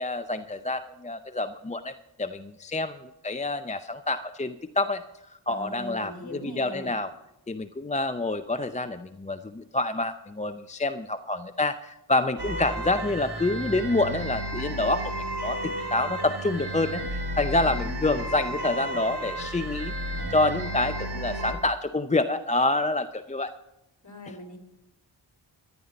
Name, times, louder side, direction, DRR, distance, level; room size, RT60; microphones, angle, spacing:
voice 1, 0.0-5.0 5.5-7.1 7.5-19.9 20.3-23.5, left 2 dB, 15° left, 9 dB, 0.5 m, -27 dB
voice 2, 5.5-6.9 17.6-18.1 24.0-24.6, left 1 dB, 40° left, 3 dB, 3.5 m, -40 dB
sound 1, 12.4-21.5, right 1 dB, 60° right, 2.4 m, -33 dB
13.5 x 11.0 x 5.2 m, 0.90 s
cardioid pair, 50°, 45 cm